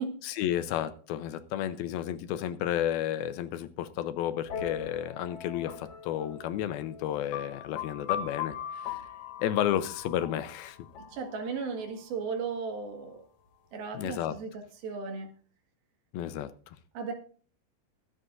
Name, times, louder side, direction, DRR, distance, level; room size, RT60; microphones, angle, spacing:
voice 1, 0.2-8.6 8.8-9.0 9.4-10.8 13.9-14.3 16.1-16.8, left 11 dB, 80° left, 2.5 m, -32 dB
sound 1, 4.5-12.1, left 9 dB, 65° left, 2.9 m, -40 dB
voice 2, 11.1-13.2 13.7-15.3 17.0-17.1, right 5 dB, 75° right, 3.5 m, -35 dB
22.0 x 7.9 x 2.5 m
omnidirectional pair, 4.5 m